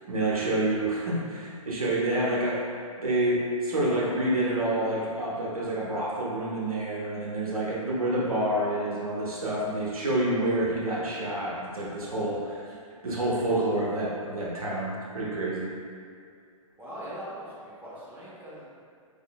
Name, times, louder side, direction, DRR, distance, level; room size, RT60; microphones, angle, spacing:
voice 1, 0.1-12.6 13.0-15.7, right 1 dB, 85° right, -6 dB, 1.1 m, -28 dB
voice 2, 16.8-17.5 17.8-18.7, equal, 10° right, -9 dB, 1.0 m, -40 dB
4.8 x 3.6 x 2.3 m, 2.3 s
figure-of-eight pair, 120°, 18 cm